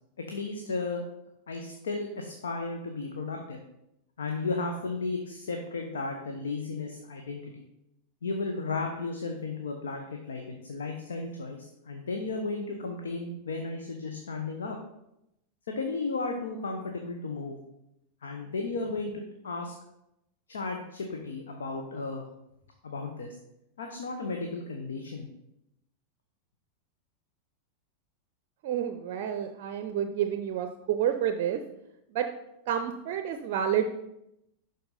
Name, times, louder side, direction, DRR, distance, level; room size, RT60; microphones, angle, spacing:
voice 1, 0.2-1.0 1.5-3.6 4.2-7.5 8.2-14.8 15.7-17.6 18.2-19.7 20.5-22.2 22.8-23.3 23.8-25.3, left 3 dB, 65° left, 3 dB, 0.9 m, -34 dB
voice 2, 28.6-31.6 32.1-32.3 32.7-33.8, right 9 dB, 50° right, 8 dB, 0.5 m, -29 dB
11.5 x 4.1 x 4.1 m, 0.84 s
figure-of-eight pair, 90°, 0 cm